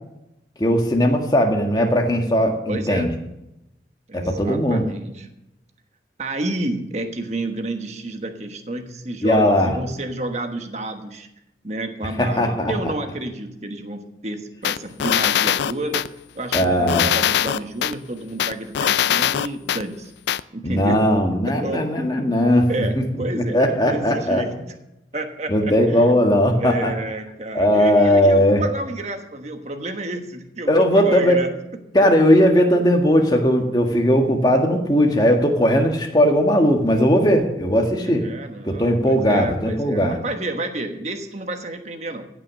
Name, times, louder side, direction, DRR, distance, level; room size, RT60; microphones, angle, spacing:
voice 1, 0.6-3.1 4.1-4.8 9.2-9.7 12.2-12.7 16.5-17.1 20.6-22.7 22.9-23.0 23.3-24.4 25.5-26.9 27.5-28.6 30.7-31.4 31.9-38.2 38.6-40.2, equal, 25° left, 2 dB, 1.7 m, -18 dB
voice 2, 2.7-3.2 4.1-5.3 6.2-11.3 11.6-16.1 16.3-20.1 20.5-21.9 22.7-24.8 25.1-26.3 26.5-31.5 38.0-42.2, right 2 dB, 40° right, 6 dB, 1.2 m, -30 dB
sound 1, 14.6-16.1 16.5-17.9 18.4-19.8 20.3-20.4, left 10 dB, 75° left, 0.4 m, -21 dB
15.5 x 6.1 x 7.5 m, 0.87 s
head